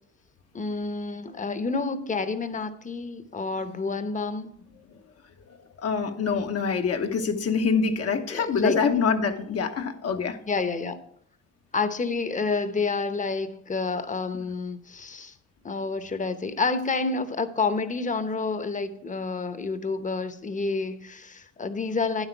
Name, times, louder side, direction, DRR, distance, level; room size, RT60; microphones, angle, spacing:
voice 1, 0.5-4.5 8.3-8.9 10.5-11.0 11.7-15.3 15.6-22.3, left 4 dB, 25° left, 11 dB, 0.9 m, -29 dB
voice 2, 5.8-10.4, left 5 dB, 55° left, 5 dB, 1.0 m, -25 dB
9.5 x 8.1 x 4.6 m, 0.67 s
cardioid pair, 90°, 30 cm